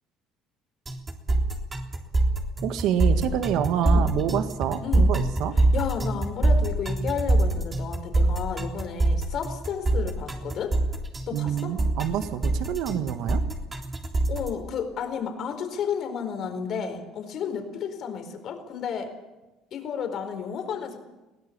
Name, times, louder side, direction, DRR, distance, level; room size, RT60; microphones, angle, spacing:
sound 1, 0.9-14.5, right 2 dB, 20° right, 3.5 m, -24 dB
voice 1, 2.6-5.5 11.3-13.4, right 10 dB, 70° right, 9 dB, 1.6 m, -27 dB
voice 2, 3.8-4.1 4.8-5.1 5.6-10.8 11.3-11.7 14.3-19.1 19.7-21.0, left 7 dB, 55° left, 7 dB, 4.4 m, -32 dB
22.0 x 17.0 x 8.7 m, 1.1 s
supercardioid pair, 100°, 0 cm